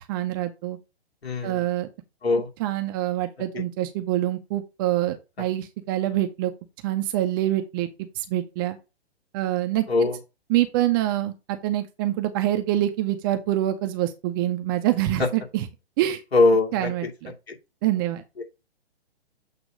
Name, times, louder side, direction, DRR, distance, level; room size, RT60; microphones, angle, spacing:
voice 1, 0.1-0.8 1.4-1.9 2.6-6.5 6.8-7.9 8.2-8.8 9.3-9.9 10.5-15.6 16.0-16.2 16.7-17.3 17.8-18.2, right 14 dB, 20° right, 0.5 m, -25 dB
voice 2, 1.2-1.6 2.2-2.5 3.5-3.6 5.4-5.5 9.9-10.2 15.2-15.3 16.3-17.1 17.5-17.6 18.4-18.5, left 3 dB, 70° left, 2.7 m, -22 dB
8.0 x 2.9 x 5.0 m
figure-of-eight pair, 125°, 32 cm